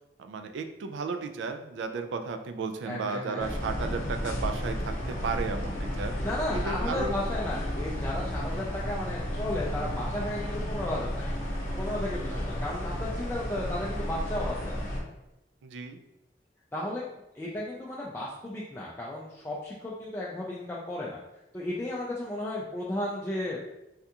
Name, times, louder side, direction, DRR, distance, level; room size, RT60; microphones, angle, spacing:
voice 1, 0.2-6.3 6.5-7.2 12.2-12.4 15.6-16.0, right 4 dB, 85° right, 7 dB, 0.3 m, -34 dB
voice 2, 2.9-3.5 6.2-11.4 11.8-14.7 16.7-17.0 17.3-21.2 21.5-23.6, left 1 dB, 15° left, -6 dB, 0.3 m, -34 dB
sound 1, 3.4-15.0, equal, 45° left, 0.7 m, -33 dB
3.4 x 2.4 x 2.7 m, 0.91 s
head